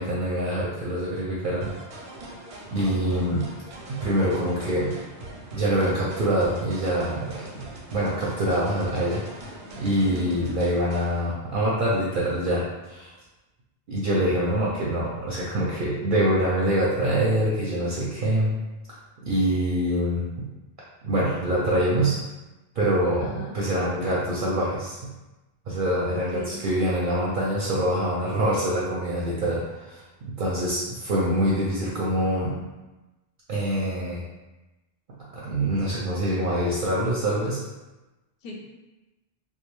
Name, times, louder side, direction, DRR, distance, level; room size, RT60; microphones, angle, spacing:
voice 1, 0.0-1.7 2.7-3.5 3.9-5.0 5.5-9.2 9.8-12.6 12.9-13.1 13.9-18.6 19.2-20.5 21.0-22.2 22.7-25.0 25.7-32.5 33.5-34.2 35.3-37.6, right 1 dB, 60° right, -5 dB, 0.6 m, -25 dB
sound 1, 1.6-11.2, right 1 dB, 85° right, 0.9 m, -41 dB
voice 2, 2.8-3.3 10.1-10.3 23.2-23.5 26.3-26.6 38.4-38.6, left 2 dB, 65° left, -1 dB, 0.7 m, -39 dB
2.3 x 2.3 x 3.0 m, 1.1 s
omnidirectional pair, 1.1 m